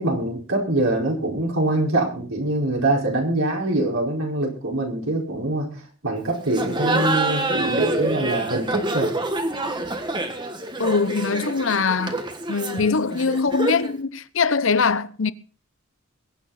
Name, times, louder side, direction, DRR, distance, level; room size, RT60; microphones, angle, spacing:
voice 1, 0.0-9.1, right 2 dB, 70° right, 4.9 m, -24 dB
Laughter, 6.5-14.0, right 2 dB, 20° right, 1.5 m, -27 dB
voice 2, 10.8-12.2 12.5-15.3, left 4 dB, 65° left, 0.8 m, -22 dB
22.0 x 9.1 x 4.2 m
head